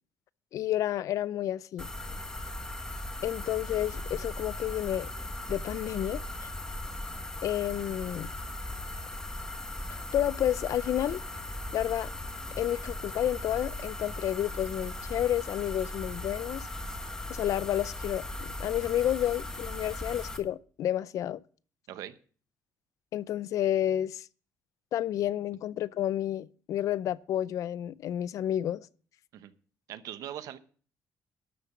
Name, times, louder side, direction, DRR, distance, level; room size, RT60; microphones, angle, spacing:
voice 1, 0.5-1.9 3.2-5.1 5.5-6.5 7.4-8.3 10.1-11.2 11.7-12.1 12.6-16.7 17.3-21.4 23.1-24.3 24.9-28.9, left 12 dB, 65° left, 0.4 m, -30 dB
sound 1, 1.8-20.4, left 1 dB, 10° left, 1.3 m, -38 dB
voice 2, 29.9-30.6, right 11 dB, 85° right, 0.9 m, -40 dB
12.5 x 6.9 x 6.1 m
cardioid pair, 145°, 6 cm